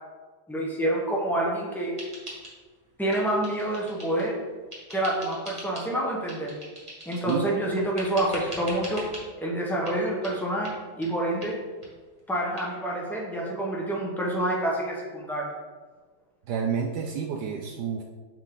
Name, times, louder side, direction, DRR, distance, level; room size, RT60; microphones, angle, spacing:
voice 1, 0.5-1.9 3.0-4.4 4.9-6.5 7.1-9.0 9.4-10.7 11.0-11.6 12.3-15.5, right 1 dB, ahead, -3 dB, 0.4 m, -27 dB
sound 1, 2.0-2.8 3.1-4.3 4.7-5.9 6.3-7.5 8.0-9.2 9.9-10.0 10.2-10.4 10.6-10.8 11.0-11.1 11.4-11.5 11.8-11.9 12.2-12.3 12.6-12.7, right 1 dB, 15° right, 1.5 m, -42 dB
voice 2, 16.5-18.0, right 7 dB, 75° right, 2 dB, 0.9 m, -29 dB
7.3 x 4.4 x 3.8 m, 1.4 s
omnidirectional pair, 2.3 m